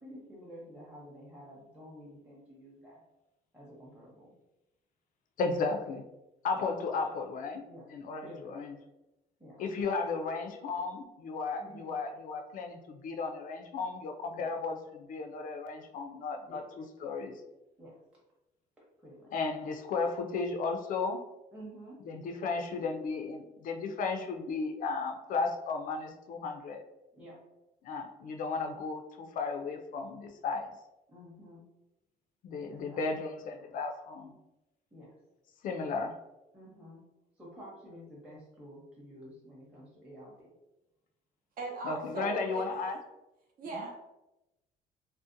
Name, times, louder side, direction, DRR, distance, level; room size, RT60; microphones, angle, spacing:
voice 1, 0.0-3.0 3.5-4.3 6.5-6.7 7.7-7.8 8.2-8.7 9.4-9.7 11.6-11.9 14.3-14.6 16.5-16.7 17.8-18.0 19.0-19.3 21.5-22.0 27.1-27.4 31.1-31.7 32.7-33.0 33.5-33.8 34.9-35.2 36.5-37.0 37.4-40.5, equal, 5° right, -6 dB, 0.7 m, -50 dB
voice 2, 5.4-6.1 6.4-8.8 9.6-16.6 17.0-17.4 19.3-21.2 22.1-26.8 27.8-30.7 32.4-34.4 35.6-36.2 41.8-43.0 43.8-43.9, left 4 dB, 55° left, 5 dB, 0.4 m, -34 dB
voice 3, 41.6-42.6 43.6-44.0, right 2 dB, 55° right, 1 dB, 0.7 m, -38 dB
2.6 x 2.1 x 2.5 m, 0.95 s
cardioid pair, 110°, 17 cm